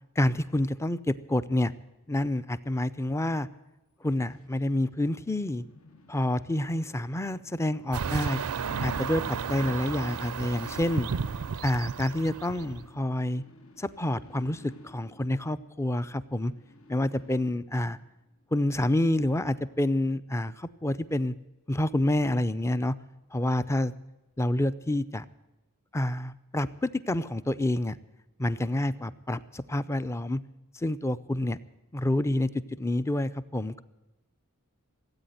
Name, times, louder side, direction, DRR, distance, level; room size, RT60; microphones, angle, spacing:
voice 1, 0.2-1.7 2.1-3.5 4.0-5.6 6.1-8.4 8.8-9.2 9.5-11.1 11.6-13.4 13.8-16.5 16.9-18.0 18.5-21.3 21.7-22.9 23.3-23.9 24.4-25.2 25.9-27.9 28.4-30.4 30.8-31.6 31.9-32.5 32.8-33.8, left 1 dB, 10° left, 15 dB, 0.4 m, -28 dB
sound 1, 4.2-18.1 18.5-18.6, left 4 dB, 70° left, 1.3 m, -51 dB
sound 2, 7.9-13.0, right 6 dB, 85° right, 0.5 m, -33 dB
17.0 x 8.7 x 9.1 m, 1.0 s
head